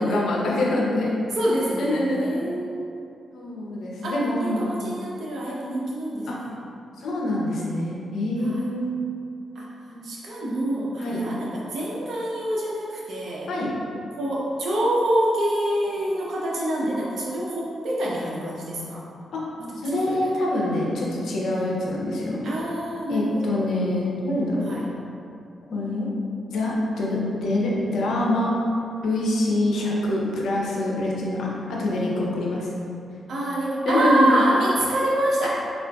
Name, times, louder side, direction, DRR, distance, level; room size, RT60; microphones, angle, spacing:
voice 1, 0.0-1.2 1.8-2.4 3.3-4.8 6.3-6.4 7.0-8.9 9.9-10.0 11.0-11.2 13.5-13.7 19.3-19.4 19.8-22.4 23.1-24.8 25.7-26.1 26.5-28.5 29.0-32.7 33.8-34.4 35.4-35.5, left 1 dB, 75° left, -4 dB, 0.5 m, -25 dB
voice 2, 1.3-3.0 4.0-6.3 8.4-8.6 9.5-9.7 10.0-13.5 14.2-19.0 19.6-20.3 21.5-21.9 22.4-23.6 24.6-24.9 33.3-35.5, right 1 dB, 70° right, -5 dB, 0.6 m, -26 dB
3.7 x 2.4 x 2.3 m, 2.5 s
supercardioid pair, 60°, 0 cm